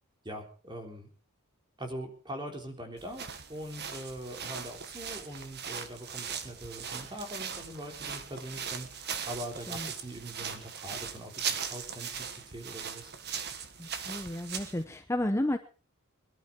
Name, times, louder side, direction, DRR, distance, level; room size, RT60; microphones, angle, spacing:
voice 1, 0.2-1.1 1.8-13.1, right 1 dB, 20° right, 3 dB, 3.7 m, -42 dB
sound 1, 3.0-14.8, right 7 dB, 50° right, 1.5 m, -39 dB
voice 2, 13.8-15.6, left 1 dB, 15° left, 6 dB, 0.9 m, -32 dB
22.5 x 12.0 x 4.7 m, 0.38 s
head